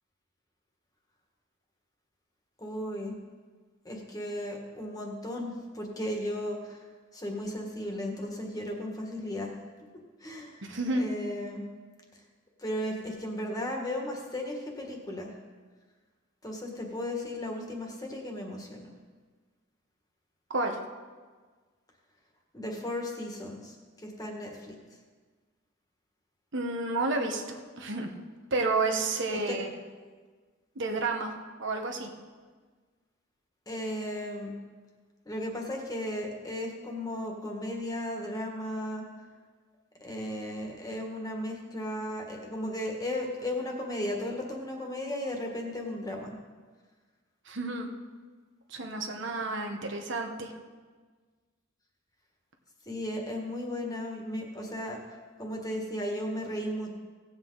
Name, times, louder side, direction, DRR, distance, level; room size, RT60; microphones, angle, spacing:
voice 1, 2.6-3.1 3.9-6.8 7.1-9.6 10.2-10.7 10.9-11.7 12.6-15.3 16.4-18.9 22.5-24.8 29.3-29.6 33.7-34.5 35.3-39.1 40.0-46.4 48.8-49.0 52.9-56.9, left 1 dB, 20° left, 1 dB, 1.6 m, -35 dB
voice 2, 10.7-11.1 20.5-20.8 26.5-28.1 28.5-29.7 30.8-31.3 31.6-32.1 47.5-47.9 48.7-50.5, right 3 dB, 65° right, 3 dB, 1.2 m, -30 dB
17.5 x 8.0 x 3.9 m, 1.4 s
head